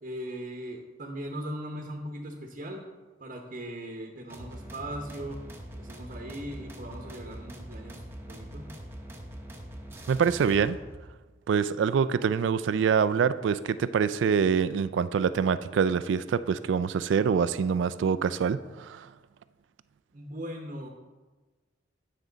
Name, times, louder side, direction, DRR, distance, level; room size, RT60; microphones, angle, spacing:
voice 1, 0.0-2.8 3.2-5.4 5.8-8.7 20.1-20.9, equal, 40° right, 1 dB, 0.9 m, -39 dB
sound 1, 4.3-11.0, equal, 10° right, 0.8 m, -43 dB
voice 2, 10.1-10.8 11.5-19.1, right 6 dB, 70° right, 14 dB, 0.3 m, -25 dB
9.4 x 6.2 x 3.9 m, 1.2 s
head